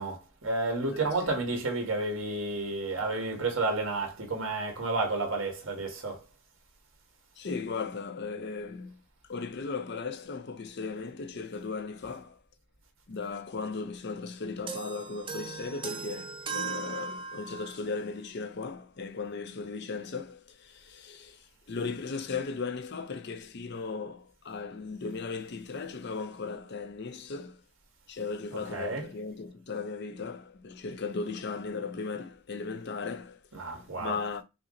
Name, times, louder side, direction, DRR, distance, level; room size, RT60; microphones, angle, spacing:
voice 1, 0.0-6.2 28.5-29.1 33.5-34.2, right 3 dB, 65° right, 1.7 m, -31 dB
voice 2, 0.9-1.4 7.4-9.0 9.3-12.4 13.1-27.6 28.1-34.4, left 4 dB, 50° left, 0.5 m, -37 dB
sound 1, 14.7-17.9, right 5 dB, 25° right, 0.6 m, -38 dB
5.7 x 2.0 x 3.8 m
head